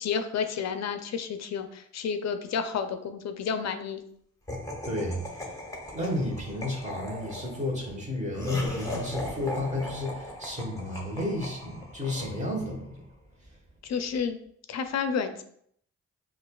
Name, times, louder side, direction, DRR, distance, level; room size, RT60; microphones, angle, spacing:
voice 1, 0.0-4.0 13.8-14.4 14.7-15.4, left 6 dB, 65° left, 8 dB, 0.4 m, -30 dB
Laughter, 4.5-12.8, left 1 dB, 10° left, 0.8 m, -38 dB
voice 2, 4.8-5.4 5.9-12.9, left 1 dB, 25° right, -1 dB, 1.2 m, -32 dB
5.2 x 2.3 x 2.3 m, 0.67 s
cardioid pair, 85°, 29 cm